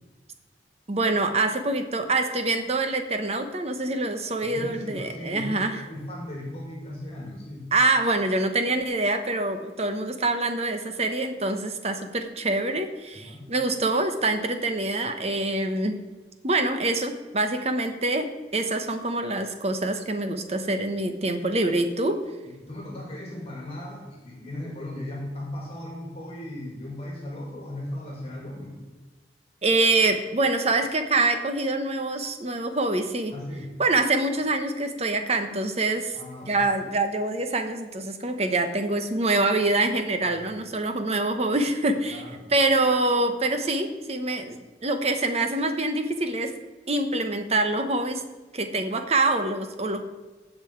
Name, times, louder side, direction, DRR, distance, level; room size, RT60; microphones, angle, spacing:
voice 1, 0.9-5.8 7.7-16.0 16.4-22.2 29.6-33.3 33.8-36.1 36.5-42.2 42.5-46.5 46.9-48.2 48.5-50.0, right 2 dB, 35° right, 7 dB, 1.0 m, -25 dB
voice 2, 4.4-7.7 13.1-13.5 22.4-28.8 33.3-33.7 36.1-36.6 39.3-39.4 40.2-40.6 42.1-42.5, left 1 dB, 35° left, -2 dB, 2.7 m, -37 dB
16.5 x 5.5 x 4.6 m, 1.3 s
head